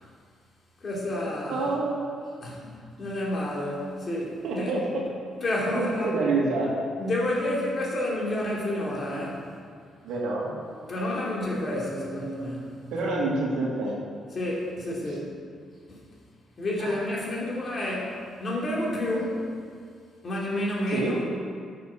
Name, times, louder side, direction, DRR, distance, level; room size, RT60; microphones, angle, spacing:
voice 1, 0.8-1.7 2.4-4.8 5.4-6.2 7.0-9.4 10.9-12.8 14.3-15.3 15.9-16.0 16.6-19.5 20.2-21.2, left 1 dB, 40° left, -4 dB, 2.9 m, -30 dB
voice 2, 1.5-2.2 4.4-4.8 5.7-6.8 10.0-10.5 12.9-14.0 16.8-17.0 20.9-21.1, right 3 dB, 85° right, -3 dB, 2.1 m, -27 dB
8.7 x 6.7 x 6.5 m, 2.1 s
cardioid pair, 90°, 0 cm